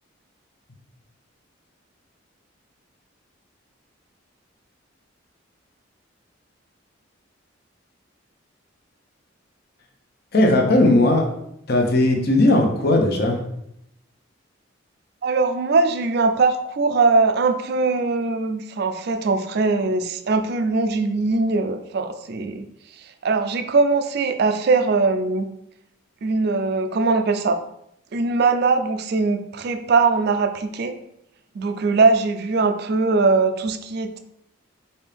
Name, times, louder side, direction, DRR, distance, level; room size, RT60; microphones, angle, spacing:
voice 1, 10.3-11.2 11.7-13.4, left 1 dB, 50° left, 2 dB, 0.8 m, -17 dB
voice 2, 15.2-22.7 23.2-25.5 26.2-27.6 28.1-30.9 31.6-34.2, right 3 dB, 55° right, 8 dB, 0.4 m, -21 dB
5.2 x 2.8 x 3.4 m, 0.78 s
head